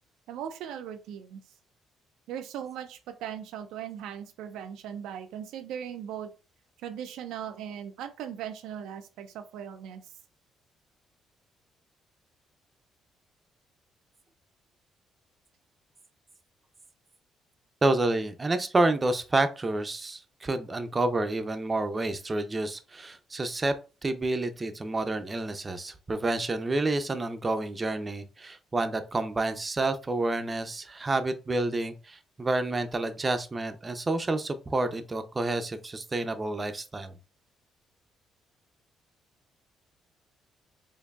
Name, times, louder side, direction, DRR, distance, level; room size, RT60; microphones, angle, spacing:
voice 1, 0.3-1.4 2.3-6.3 6.8-10.1, right 9 dB, 85° right, 0.3 m, -38 dB
voice 2, 17.8-23.7 24.0-37.1, right 2 dB, 30° right, 0.5 m, -29 dB
4.5 x 2.6 x 2.3 m
supercardioid pair, 65°, 0 cm